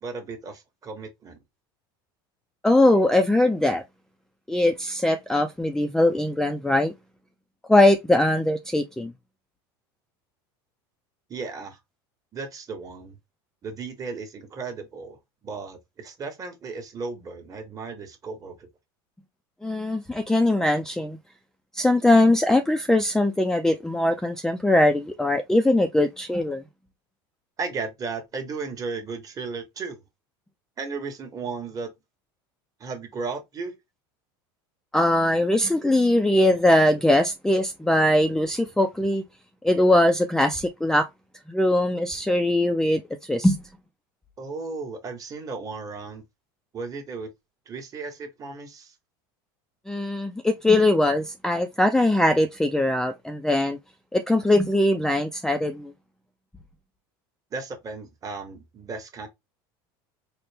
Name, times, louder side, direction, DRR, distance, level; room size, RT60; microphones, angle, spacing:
voice 1, 0.0-1.4 11.3-11.8 12.3-13.2 13.6-15.2 15.4-18.7 27.6-30.0 30.8-31.9 32.8-33.7 44.4-46.2 46.7-47.3 47.7-48.9 57.5-59.3, right 4 dB, 30° right, 1.3 m, -35 dB
voice 2, 2.6-3.8 4.5-6.9 7.7-9.1 19.6-21.2 21.7-26.6 34.9-39.2 39.6-41.1 41.5-43.6 49.9-53.8 54.1-55.9, left 1 dB, 5° left, 0.4 m, -21 dB
4.1 x 2.1 x 3.3 m
supercardioid pair, 115°, 12 cm